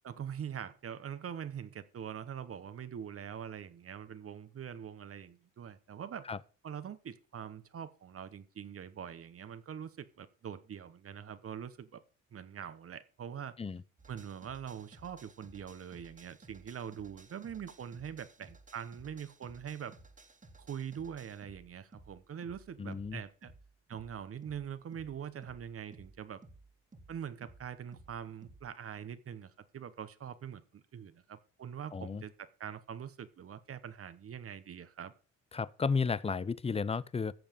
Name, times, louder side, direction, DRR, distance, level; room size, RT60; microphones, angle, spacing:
voice 1, 0.0-6.3 6.6-12.0 12.3-13.6 14.1-19.9 20.6-23.5 23.9-26.4 27.1-35.1, right 8 dB, 50° right, 1.1 m, -43 dB
sound 1, 14.0-28.7, right 2 dB, 25° right, 2.0 m, -57 dB
voice 2, 22.8-23.2 31.9-32.2 35.5-37.3, left 5 dB, 20° left, 0.6 m, -33 dB
14.0 x 7.1 x 5.2 m
cardioid pair, 90°, 30 cm